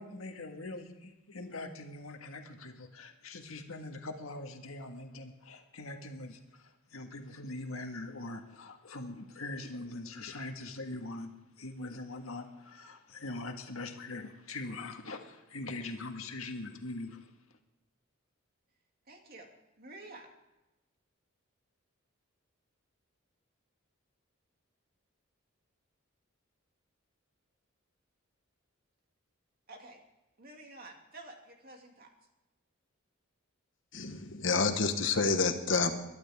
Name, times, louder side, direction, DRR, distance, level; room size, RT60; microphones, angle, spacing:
voice 1, 0.0-11.3 11.6-17.3, left 2 dB, 85° left, 4 dB, 1.7 m, -42 dB
voice 2, 19.1-19.5 19.8-20.3 29.7-30.0 30.4-32.1, right 2 dB, 45° right, 2 dB, 2.5 m, -50 dB
voice 3, 33.9-35.9, left 4 dB, 60° left, 7 dB, 1.4 m, -28 dB
22.0 x 12.0 x 3.6 m, 0.97 s
head